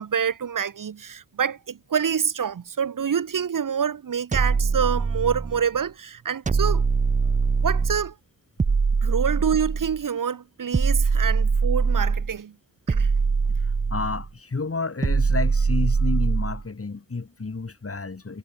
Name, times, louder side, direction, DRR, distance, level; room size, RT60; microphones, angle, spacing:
voice 1, 0.0-6.8 7.2-8.1 9.0-12.5 12.9-13.1, right 7 dB, 65° right, 0.7 m, -27 dB
sound 1, 4.3-5.6 6.5-8.1 8.6-10.0 10.7-12.4 12.9-14.3 15.0-16.6, right 4 dB, 25° right, 0.3 m, -22 dB
voice 2, 13.7-18.4, left 4 dB, 40° left, 1.7 m, -30 dB
wide cardioid pair, 70°, 34 cm